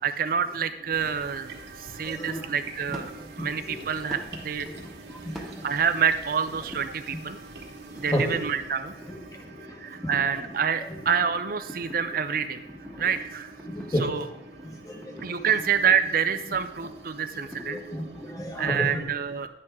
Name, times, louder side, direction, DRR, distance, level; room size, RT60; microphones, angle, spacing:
voice 1, 0.0-4.7 5.4-7.4 7.9-8.9 9.8-12.6 13.0-13.5 14.0-14.2 15.2-17.8 18.6-19.5, right 7 dB, 55° right, 9 dB, 0.5 m, -27 dB
sound 1, 0.7-18.9, right 4 dB, 90° right, 2.0 m, -48 dB
sound 2, 0.9-9.0, right 3 dB, 70° right, 1.6 m, -47 dB
sound 3, 2.0-18.9, equal, ahead, 1.3 m, -47 dB
voice 2, 2.1-2.5 2.9-3.0 3.6-3.8 4.7-4.8 5.1-5.2 8.1-8.4 9.1-9.2 10.0-10.3 10.9-11.0 13.6-14.1 14.9-15.1 17.4-19.1, equal, 20° left, 2 dB, 1.4 m, -31 dB
11.0 x 9.2 x 3.6 m, 0.85 s
head